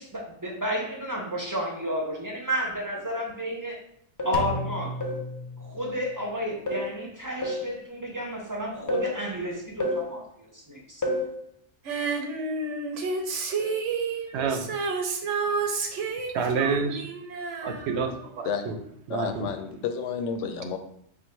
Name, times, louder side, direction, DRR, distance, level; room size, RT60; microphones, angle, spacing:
voice 1, 0.0-3.8 4.2-5.0 5.6-10.2 10.5-11.0, equal, 20° right, -1 dB, 0.6 m, -31 dB
sound 1, 4.2-4.5 5.0-5.3 6.7-7.0 7.4-7.7 8.9-9.2 9.8-10.1 11.0-11.3 13.6-13.9 14.4-14.6, left 1 dB, 20° left, 0.5 m, -30 dB
Drum, 4.3-6.3, left 1 dB, 60° left, 0.7 m, -35 dB
Female singing, 11.9-18.5 18.8-18.9, right 4 dB, 90° right, 1.0 m, -30 dB
voice 2, 14.3-14.7 16.3-17.1 17.6-18.1 18.4-18.7 19.1-19.5, right 5 dB, 70° right, 5 dB, 0.8 m, -27 dB
voice 3, 19.1-20.8, left 6 dB, 85° left, 7 dB, 0.9 m, -31 dB
3.5 x 2.5 x 4.4 m, 0.71 s
omnidirectional pair, 1.2 m